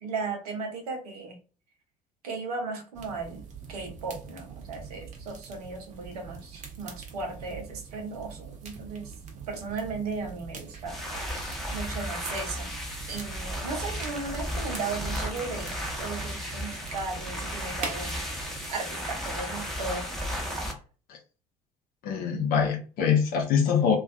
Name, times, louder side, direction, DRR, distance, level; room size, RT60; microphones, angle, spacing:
voice 1, 0.0-1.4 2.2-9.1 9.5-11.0 11.7-12.7 13.1-20.1, right 4 dB, 70° right, 4 dB, 0.7 m, -36 dB
sound 1, 2.9-18.7, right 5 dB, 35° right, 0.6 m, -43 dB
sound 2, 10.8-20.7, equal, ahead, 0.8 m, -34 dB
voice 2, 22.0-24.0, left 7 dB, 50° left, 2 dB, 0.7 m, -24 dB
2.5 x 2.3 x 2.3 m, 0.36 s
figure-of-eight pair, 55°, 20 cm